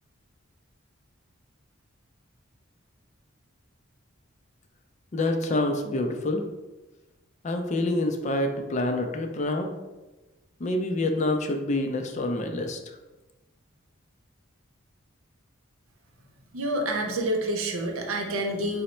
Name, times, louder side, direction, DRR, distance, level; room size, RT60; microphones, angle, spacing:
voice 1, 5.1-6.4 7.4-9.7 10.6-12.8, left 2 dB, 35° left, 5 dB, 0.4 m, -27 dB
voice 2, 16.5-18.8, right 1 dB, 80° right, 3 dB, 0.7 m, -28 dB
3.9 x 2.1 x 4.2 m, 1.1 s
head